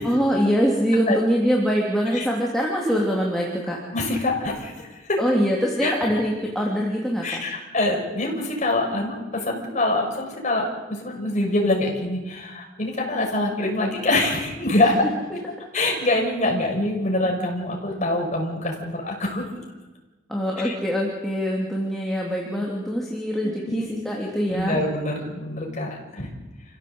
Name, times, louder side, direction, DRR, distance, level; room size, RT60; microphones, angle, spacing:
voice 1, 0.0-3.8 5.2-7.4 20.3-24.8, equal, ahead, -3 dB, 3.3 m, -23 dB
voice 2, 3.9-5.2 5.8-5.9 7.2-15.0 15.3-15.4 15.7-19.5 20.6-20.7 23.4-23.9 24.5-26.3, left 2 dB, 40° left, 1 dB, 5.8 m, -25 dB
28.0 x 16.0 x 8.1 m, 1.2 s
head